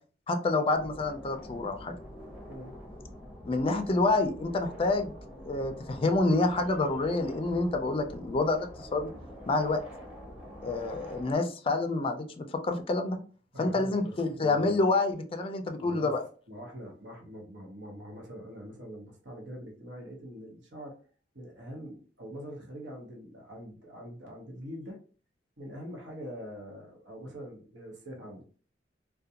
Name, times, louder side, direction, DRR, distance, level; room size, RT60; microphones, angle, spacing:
voice 1, 0.3-1.9 3.4-5.1 5.5-9.1 9.5-9.8 10.6-13.2 13.6-16.2, left 2 dB, 30° left, 6 dB, 0.4 m, -28 dB
sound 1, 0.7-11.3, left 1 dB, 5° right, 0.7 m, -46 dB
voice 2, 2.5-2.8 13.5-14.8 15.8-16.2 16.5-21.0 21.3-25.0 25.6-28.4, equal, 85° right, 1 dB, 0.9 m, -43 dB
2.4 x 2.2 x 2.7 m, 0.40 s
head